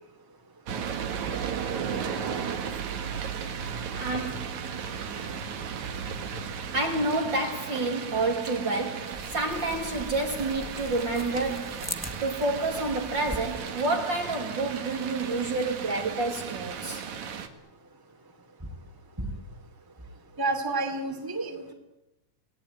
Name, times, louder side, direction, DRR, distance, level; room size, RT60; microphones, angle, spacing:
sound 1, 0.7-17.5, right 7 dB, 70° right, 3.1 m, -35 dB
voice 1, 3.9-4.6 6.7-17.0, right 2 dB, 40° right, 3.0 m, -29 dB
sound 2, 9.0-13.6, left 1 dB, 15° left, 0.5 m, -41 dB
voice 2, 20.4-21.7, right 2 dB, 5° right, 2.8 m, -30 dB
29.0 x 18.5 x 9.2 m
omnidirectional pair, 3.4 m